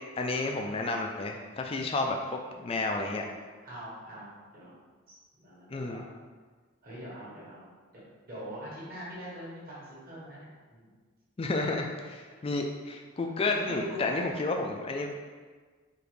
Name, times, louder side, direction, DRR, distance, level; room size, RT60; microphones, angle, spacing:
voice 1, 0.2-2.2 2.6-3.2 5.7-6.0 11.4-15.1, left 3 dB, 25° left, 2 dB, 0.3 m, -31 dB
voice 2, 3.6-4.7 5.3-6.0 6.8-7.7 8.2-10.9 12.3-12.4 13.4-14.0, equal, 45° right, -8 dB, 1.5 m, -43 dB
4.9 x 2.5 x 3.2 m, 1.5 s
head